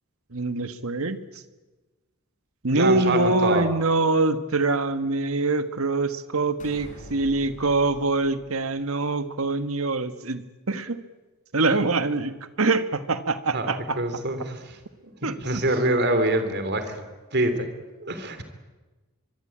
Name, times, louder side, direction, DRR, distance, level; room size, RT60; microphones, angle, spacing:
voice 1, 0.3-1.2 2.6-10.4 10.7-11.0 11.5-14.0 15.2-15.6, right 3 dB, 70° right, 11 dB, 1.5 m, -24 dB
voice 2, 2.7-3.7 13.5-14.8 15.0-17.1 17.3-17.7 18.0-18.4, right 1 dB, 50° right, 9 dB, 3.3 m, -25 dB
sound 1, 6.6-9.2, equal, 35° left, 6.1 m, -45 dB
24.0 x 22.5 x 8.7 m, 1.2 s
head